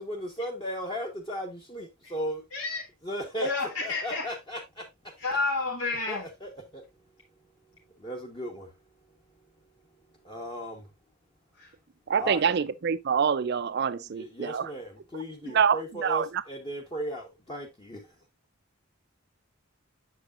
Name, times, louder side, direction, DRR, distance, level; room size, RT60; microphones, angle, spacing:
voice 1, 0.0-2.4 3.0-3.5 3.8-4.8 6.1-6.8 8.0-8.7 10.2-10.8 12.1-12.5 14.0-18.0, equal, 25° left, 1.2 m, -36 dB
voice 2, 2.5-2.9 3.4-4.2 5.2-6.2 11.6-11.7, left 3 dB, 70° left, 1.8 m, -30 dB
voice 3, 12.1-14.7 15.5-16.4, right 7 dB, 50° right, 0.4 m, -26 dB
8.1 x 6.9 x 2.4 m
head